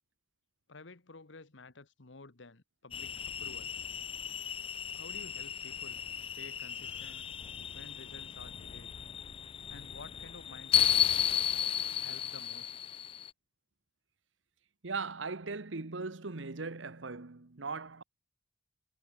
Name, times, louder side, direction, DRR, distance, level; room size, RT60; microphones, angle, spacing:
voice 1, 0.7-3.8 4.9-7.3 7.7-8.9 9.7-11.3 12.0-12.7, left 3 dB, 70° left, 1.4 m, -52 dB
sound 1, 2.9-13.3, left 9 dB, 30° left, 0.3 m, -34 dB
voice 2, 14.8-18.0, right 4 dB, 75° right, 1.2 m, -39 dB
head